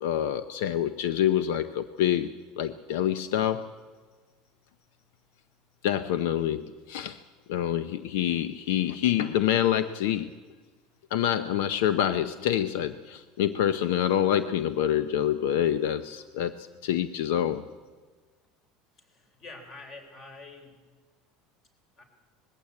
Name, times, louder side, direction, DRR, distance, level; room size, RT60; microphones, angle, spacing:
voice 1, 0.0-2.3 2.6-3.6 5.8-7.2 7.5-10.3 11.1-17.6, left 10 dB, 80° left, 13 dB, 0.7 m, -26 dB
voice 2, 18.9-20.8 22.0-22.1, left 3 dB, 35° left, 5 dB, 3.9 m, -46 dB
20.5 x 15.5 x 8.4 m, 1.4 s
cardioid pair, 155°, 0 cm